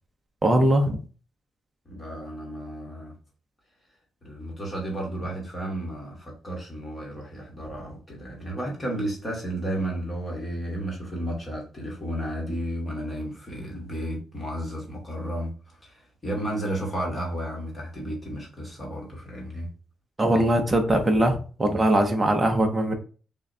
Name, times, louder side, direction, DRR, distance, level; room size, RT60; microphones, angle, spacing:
voice 1, 0.4-1.0 20.2-22.9, right 1 dB, 15° right, 0.6 m, -21 dB
voice 2, 1.8-3.2 4.2-19.7, right 1 dB, 20° left, 1.3 m, -33 dB
6.1 x 2.1 x 2.6 m
wide cardioid pair, 160°, 0 cm